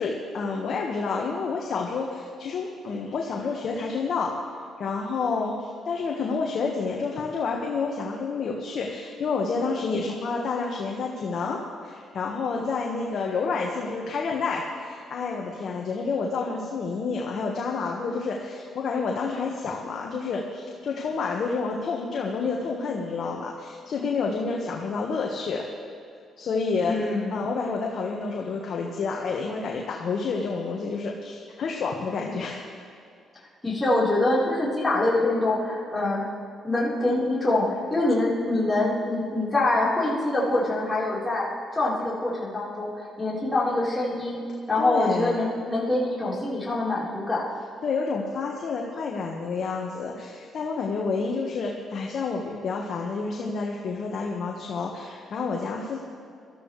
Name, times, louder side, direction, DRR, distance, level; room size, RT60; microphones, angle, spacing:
voice 1, 0.0-4.3 4.8-25.6 26.4-27.0 27.3-32.6 44.8-45.4 47.8-56.0, left 4 dB, 60° left, -1 dB, 1.4 m, -29 dB
voice 2, 26.8-27.3 33.6-36.2 36.6-41.4 41.7-44.4 44.7-47.4, left 2 dB, 10° left, -8 dB, 4.0 m, -25 dB
20.0 x 13.5 x 3.3 m, 2.4 s
cardioid pair, 90°, 0 cm